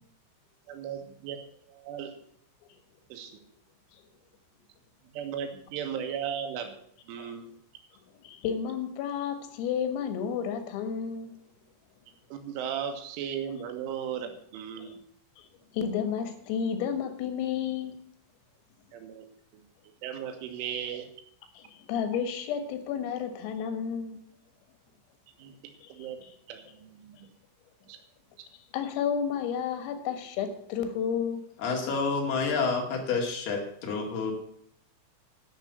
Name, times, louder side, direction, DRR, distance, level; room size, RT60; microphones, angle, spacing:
voice 1, 0.7-1.4 1.7-2.2 3.1-3.4 5.1-6.7 7.1-7.5 12.3-14.9 18.9-19.3 19.5-19.6 20.0-21.1 25.4-26.2 26.5-27.3 27.9-28.0, right 8 dB, 75° right, 5 dB, 3.8 m, -36 dB
voice 2, 8.2-11.3 14.8-14.9 15.4-15.5 15.7-17.9 21.6-24.2 25.8-25.9 26.2-26.3 28.7-31.4, left 7 dB, 85° left, 8 dB, 4.1 m, -31 dB
voice 3, 31.6-34.3, left 4 dB, 55° left, 1 dB, 3.8 m, -29 dB
11.0 x 7.3 x 8.0 m, 0.65 s
omnidirectional pair, 5.9 m